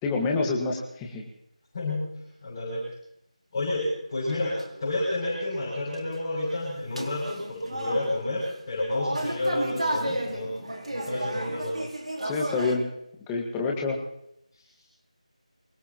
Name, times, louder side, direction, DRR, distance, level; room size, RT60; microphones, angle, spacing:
voice 1, 0.0-1.2 12.2-12.9 13.3-14.0, left 3 dB, 10° left, 0 dB, 1.7 m, -27 dB
voice 2, 1.7-2.1 2.4-2.8 3.5-11.8 14.5-14.6, left 1 dB, 25° left, -6 dB, 7.7 m, -30 dB
sound 1, 3.7-3.8 4.3-4.9 5.9-6.0 7.0-8.2 8.9-12.8, right 1 dB, 65° right, 4.2 m, -32 dB
26.0 x 17.0 x 3.0 m, 0.78 s
figure-of-eight pair, 170°, 4 cm